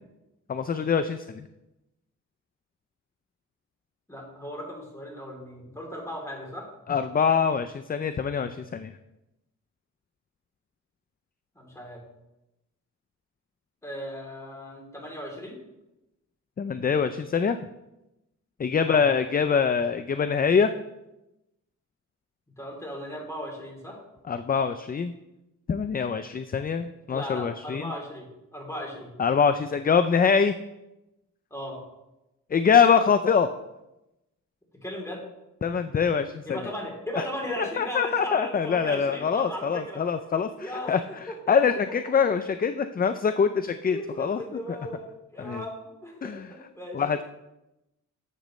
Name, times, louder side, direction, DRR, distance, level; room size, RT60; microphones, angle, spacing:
voice 1, 0.5-1.5 6.9-8.9 16.6-17.6 18.6-20.7 24.3-25.1 25.7-27.9 29.2-30.5 32.5-33.5 35.6-36.6 37.2-37.3 37.6-44.4 45.4-45.6 46.2-46.5 46.9-47.2, left 6 dB, 30° left, 10 dB, 0.4 m, -24 dB
voice 2, 4.1-6.7 11.5-12.0 13.8-15.6 18.8-19.1 22.6-24.0 27.1-29.1 31.5-31.8 34.8-35.2 36.4-40.0 40.6-41.5 43.9-47.0, equal, 10° left, -1 dB, 3.0 m, -37 dB
12.0 x 7.4 x 3.1 m, 0.94 s
wide cardioid pair, 95°, 32 cm